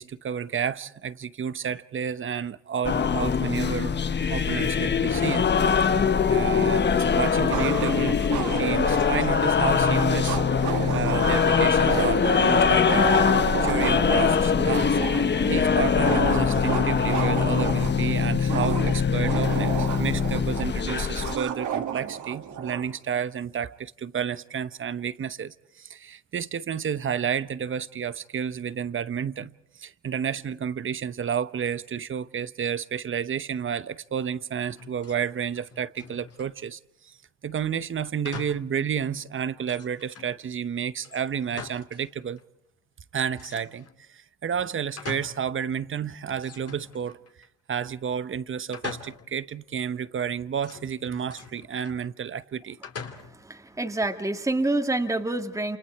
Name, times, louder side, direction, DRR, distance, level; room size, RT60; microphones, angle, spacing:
voice 1, 0.0-4.0 4.3-5.5 6.3-6.9 7.1-8.2 8.6-13.2 13.6-37.2 37.4-42.4 43.1-47.2 47.7-52.8, right 7 dB, 40° right, 0.9 m, -31 dB
sound 1, 2.8-21.4, left 6 dB, 35° left, 1.1 m, -22 dB
sound 2, 6.5-6.6 7.5-22.9, right 8 dB, 75° right, 1.8 m, -32 dB
sound 3, 34.7-35.3 35.5-36.6 38.2-38.7 39.2-39.3 39.7-40.3 41.0-42.1 42.4-42.5 43.4-44.0 44.5-45.5 45.8-45.9 46.4-47.5 48.7-49.4 50.6-52.0 52.8-53.5, left 5 dB, 55° left, 2.9 m, -42 dB
voice 2, 53.2-55.8, right 2 dB, 10° right, 1.8 m, -27 dB
29.0 x 28.0 x 4.6 m
cardioid pair, 90°, 30 cm